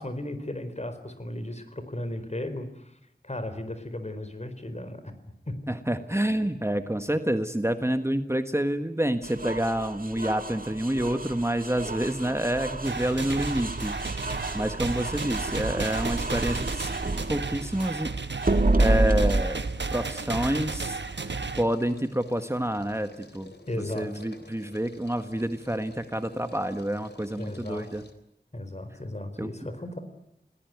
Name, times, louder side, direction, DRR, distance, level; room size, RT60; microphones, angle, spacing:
voice 1, 0.0-2.9 3.2-5.1 5.5-5.6 23.7-24.2 27.4-27.9 28.5-30.0, left 1 dB, 40° left, 10 dB, 4.5 m, -35 dB
voice 2, 5.7-16.9 17.3-18.1 18.4-19.6 19.9-23.5 23.9-28.0 29.4-29.5, right 1 dB, 15° right, 8 dB, 1.4 m, -28 dB
sound 1, 9.2-18.0 18.4-19.4, right 2 dB, 50° right, 2.0 m, -29 dB
sound 2, 12.8-21.6, right 4 dB, 90° right, 1.2 m, -33 dB
sound 3, 17.7-28.1, left 2 dB, 70° left, 3.5 m, -53 dB
28.5 x 19.0 x 9.5 m, 0.79 s
wide cardioid pair, 50°, 18 cm